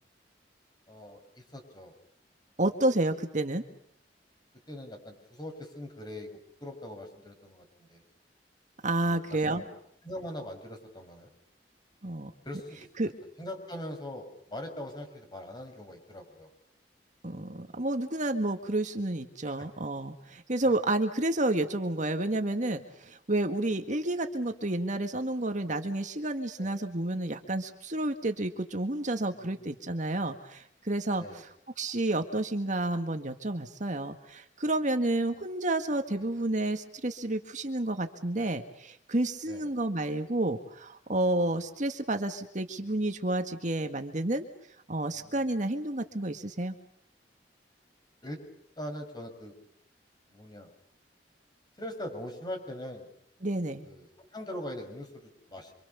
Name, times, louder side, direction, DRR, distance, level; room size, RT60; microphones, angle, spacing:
voice 1, 0.9-1.9 4.7-8.0 9.0-9.7 10.0-11.3 12.4-13.1 13.4-16.5 19.5-19.7 20.6-20.8 26.6-26.7 29.3-29.7 31.2-31.4 36.2-36.3 39.5-39.7 45.1-45.4 48.2-48.4 48.8-49.5 50.3-50.7 51.8-53.1 53.8-55.7, left 1 dB, 25° left, 5 dB, 6.7 m, -42 dB
voice 2, 2.6-3.6 8.8-9.6 12.0-12.3 13.0-13.1 17.2-31.5 31.8-44.5 44.9-46.8 53.4-53.9, right 2 dB, 45° right, 6 dB, 1.9 m, -30 dB
28.5 x 26.0 x 7.0 m, 0.70 s
head